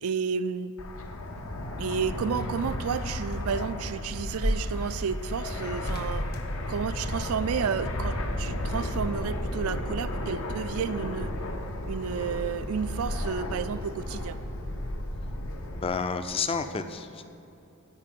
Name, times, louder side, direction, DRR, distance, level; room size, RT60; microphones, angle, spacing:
voice 1, 0.0-0.7 1.8-6.3 6.7-11.3 11.9-14.4, right 6 dB, 75° right, 14 dB, 0.4 m, -31 dB
Fixed-wing aircraft airplane, 0.8-15.9, left 1 dB, 70° left, 0.8 m, -33 dB
sound 1, 1.9-7.4 8.8-9.6 9.9-10.0, equal, 45° left, 0.9 m, -37 dB
voice 2, 15.8-17.3, left 5 dB, 25° left, 9 dB, 0.4 m, -30 dB
9.9 x 4.5 x 7.6 m, 2.7 s
head